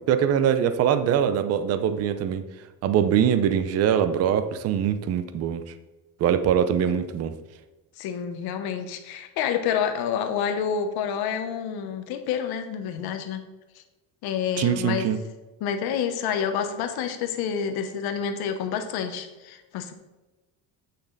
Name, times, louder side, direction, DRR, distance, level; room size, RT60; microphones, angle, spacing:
voice 1, 0.1-2.4 2.8-5.6 6.2-7.3 14.6-15.2, right 9 dB, 40° right, 11 dB, 0.5 m, -23 dB
voice 2, 8.0-13.4 14.2-15.1 15.6-19.9, left 7 dB, 70° left, 7 dB, 1.1 m, -28 dB
8.5 x 6.6 x 4.0 m, 1.1 s
cardioid pair, 180°, 39 cm